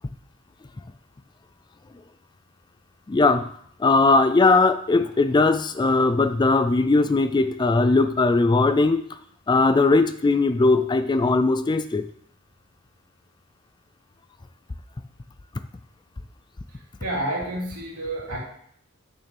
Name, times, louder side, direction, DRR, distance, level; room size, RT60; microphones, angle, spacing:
voice 1, 3.1-3.5 3.8-9.0 9.5-12.0, left 3 dB, 20° left, 11 dB, 0.3 m, -19 dB
voice 2, 16.7-18.4, right 1 dB, 85° right, -4 dB, 2.9 m, -30 dB
9.0 x 6.8 x 3.4 m, 0.65 s
head